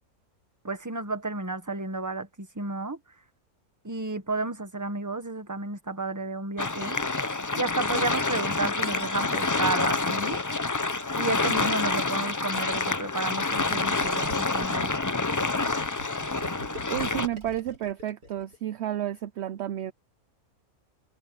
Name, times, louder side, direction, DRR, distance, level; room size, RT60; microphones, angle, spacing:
voice 1, 0.6-3.0 3.8-7.0 7.5-10.4 11.2-14.9, right 3 dB, 15° right, 1.3 m, -32 dB
sound 1, 6.6-17.3, left 3 dB, 25° left, 0.4 m, -27 dB
Gurgling, 14.0-18.7, right 1 dB, 80° right, 4.8 m, -43 dB
voice 2, 16.9-19.9, right 12 dB, 60° right, 0.7 m, -31 dB
omnidirectional pair, 1.6 m